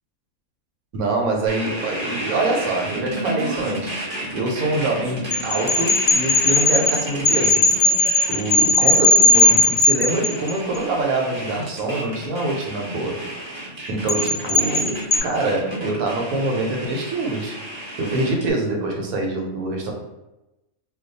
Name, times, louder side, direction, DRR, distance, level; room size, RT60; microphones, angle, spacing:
voice 1, 0.9-3.9 4.3-7.8 8.3-13.3 13.9-17.6 18.0-19.9, right 2 dB, 80° right, 0 dB, 1.1 m, -25 dB
sound 1, 1.5-18.5, right 1 dB, 30° right, 0.6 m, -32 dB
sound 2, 5.3-10.8 14.1-15.2, left 2 dB, 55° left, 0.5 m, -17 dB
2.4 x 2.3 x 3.9 m, 0.97 s
omnidirectional pair, 1.5 m